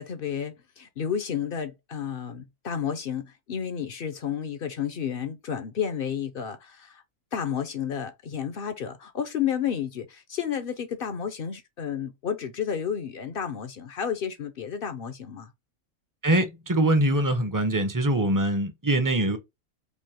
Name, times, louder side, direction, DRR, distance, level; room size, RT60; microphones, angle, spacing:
voice 1, 0.0-7.0 7.3-15.5, left 8 dB, 60° left, 0.6 m, -31 dB
voice 2, 16.2-19.4, right 1 dB, 30° right, 0.3 m, -23 dB
5.2 x 2.0 x 2.8 m
omnidirectional pair, 1.6 m